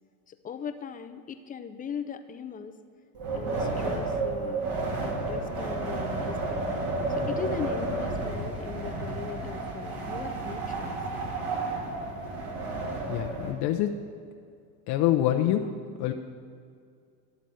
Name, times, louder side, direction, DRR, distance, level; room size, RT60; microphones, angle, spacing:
voice 1, 0.3-2.8 3.3-4.7 5.0-6.6 7.1-11.0, left 7 dB, 20° left, 9 dB, 0.4 m, -39 dB
Wind, 3.1-13.5, right 2 dB, 55° right, 2.2 m, -31 dB
voice 2, 13.1-14.0 14.9-15.7 16.0-16.1, left 12 dB, 60° left, 3 dB, 0.7 m, -25 dB
11.5 x 4.0 x 7.6 m, 2.2 s
supercardioid pair, 105°, 45 cm